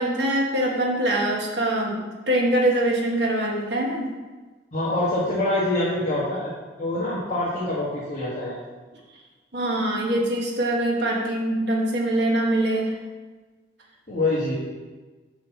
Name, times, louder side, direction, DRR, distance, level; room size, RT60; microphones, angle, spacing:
voice 1, 0.0-4.1 9.5-12.9, right 1 dB, 60° right, -1 dB, 1.4 m, -23 dB
voice 2, 4.7-6.5 6.8-8.6 14.1-14.5, left 1 dB, 35° left, -8 dB, 1.5 m, -25 dB
6.6 x 5.7 x 4.1 m, 1.3 s
head